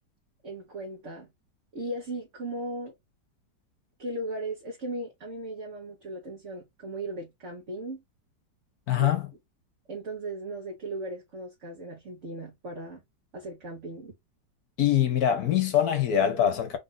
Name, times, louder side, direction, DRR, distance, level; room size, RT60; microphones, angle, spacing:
voice 1, 0.4-1.3 1.7-2.9 4.0-8.0 8.9-9.1 9.9-13.0 13.3-14.1, right 1 dB, 45° right, 1.4 m, -37 dB
voice 2, 8.9-9.2 14.8-16.8, left 10 dB, 60° left, 1.3 m, -23 dB
3.8 x 2.6 x 3.9 m
omnidirectional pair, 1.9 m